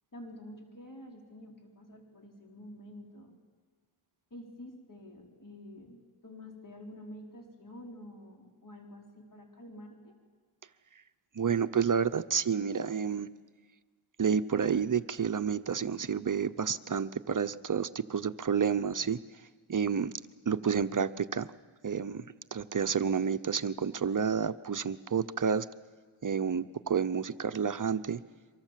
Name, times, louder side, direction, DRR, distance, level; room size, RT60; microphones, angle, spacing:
voice 1, 0.1-3.3 4.3-10.1, left 1 dB, 40° left, 0 dB, 4.4 m, -48 dB
voice 2, 11.3-13.3 14.2-19.2 19.7-20.1 20.5-21.5 21.8-22.2 22.5-25.7 26.2-28.2, right 6 dB, 40° right, 13 dB, 0.8 m, -30 dB
27.5 x 24.5 x 7.5 m, 1.5 s
cardioid pair, 75°, 50 cm